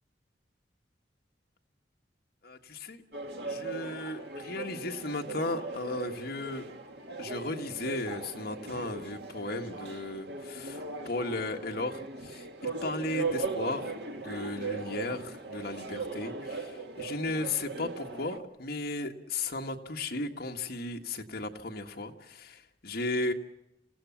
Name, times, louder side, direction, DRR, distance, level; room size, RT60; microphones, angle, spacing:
voice 1, 2.4-3.0 3.4-6.7 7.2-13.9 14.2-23.3, left 2 dB, 60° left, 3 dB, 1.6 m, -35 dB
sound 1, 3.1-18.4, right 3 dB, 70° right, 2.1 m, -38 dB
28.5 x 16.0 x 7.2 m, 0.89 s
head